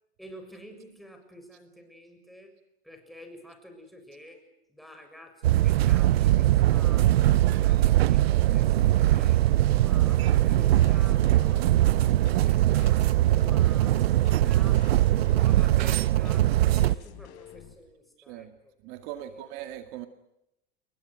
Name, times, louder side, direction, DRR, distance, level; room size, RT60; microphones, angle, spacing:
voice 1, 0.2-2.6 2.8-7.1 7.4-13.1 13.3-18.7 19.2-19.5, equal, ahead, 5 dB, 7.0 m, -49 dB
sound 1, 5.4-17.0, right 14 dB, 85° right, 0.8 m, -21 dB
sound 2, 9.7-17.7, left 11 dB, 50° left, 5.4 m, -49 dB
voice 2, 11.6-11.9 18.3-18.5 18.8-20.1, right 13 dB, 55° right, 7 dB, 2.2 m, -40 dB
29.5 x 22.5 x 6.3 m, 0.84 s
supercardioid pair, 130°, 30 cm